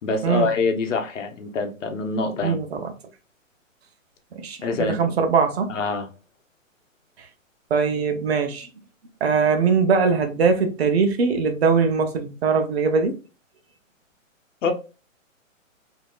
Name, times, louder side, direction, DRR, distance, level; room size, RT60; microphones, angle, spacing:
voice 1, 0.0-2.6 4.6-5.1 5.7-6.1 14.6-14.7, left 4 dB, 65° left, 1.0 m, -25 dB
voice 2, 2.4-2.9 4.4-5.7 7.7-8.7 9.2-13.1, right 5 dB, 50° right, 0.8 m, -21 dB
3.5 x 2.8 x 2.4 m
hypercardioid pair, 165°, 40 cm